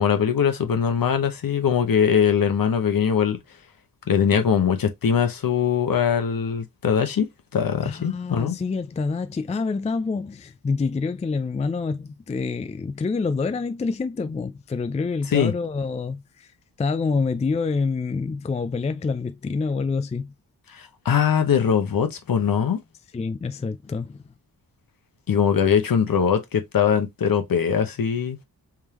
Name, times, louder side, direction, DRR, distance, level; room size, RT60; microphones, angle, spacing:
voice 1, 0.0-3.4 4.1-8.5 15.3-15.5 17.0-17.1 20.7-22.8 25.3-28.4, left 7 dB, 65° left, 1.0 m, -21 dB
voice 2, 7.8-16.5 16.8-20.3 23.1-24.2, left 4 dB, 20° left, 0.4 m, -27 dB
3.6 x 3.3 x 3.0 m
cardioid pair, 80°, 37 cm